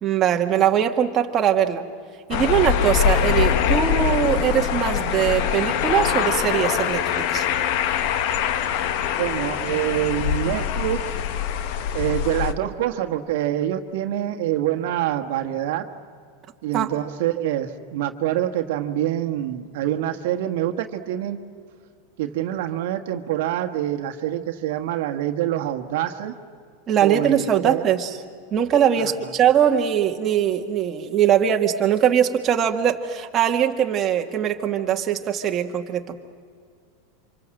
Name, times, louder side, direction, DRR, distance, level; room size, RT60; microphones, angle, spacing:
voice 1, 0.0-1.8 2.3-7.5 16.7-16.9 26.9-28.2 28.5-36.0, right 9 dB, 25° right, 2 dB, 1.8 m, -21 dB
sound 1, 2.3-12.5, left 9 dB, 55° left, 1.3 m, -23 dB
voice 2, 9.1-11.2 11.9-15.8 16.6-21.4 22.2-26.3 27.0-27.8 29.0-29.3, right 12 dB, 70° right, 6 dB, 1.5 m, -26 dB
27.5 x 26.0 x 7.8 m, 2.1 s
supercardioid pair, 145°, 0 cm